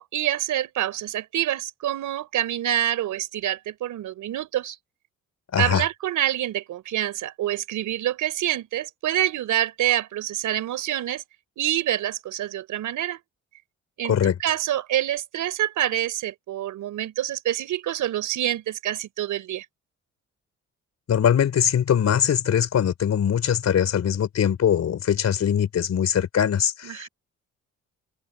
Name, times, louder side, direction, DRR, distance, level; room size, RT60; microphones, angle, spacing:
voice 1, 0.0-4.8 5.6-11.2 11.6-13.2 14.0-19.6 26.8-27.1, right 12 dB, 80° right, 4.8 m, -26 dB
voice 2, 5.5-5.8 14.0-14.4 21.1-27.1, left 9 dB, 60° left, 4.2 m, -22 dB
cardioid pair, 90°, 30 cm